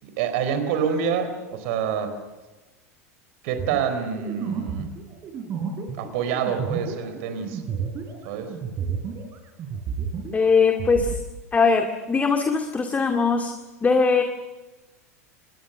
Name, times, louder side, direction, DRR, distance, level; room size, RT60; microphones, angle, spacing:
voice 1, 0.0-2.1 3.4-5.0 6.0-7.6 8.2-8.5, right 7 dB, 55° right, 9 dB, 4.1 m, -27 dB
sound 1, 3.6-9.3 9.6-11.2, right 6 dB, 35° right, 5.4 m, -31 dB
voice 2, 10.3-11.1 11.5-13.5 13.8-14.2, left 4 dB, 20° left, 5 dB, 2.2 m, -20 dB
27.5 x 21.5 x 7.1 m, 1.2 s
figure-of-eight pair, 85°, 8 cm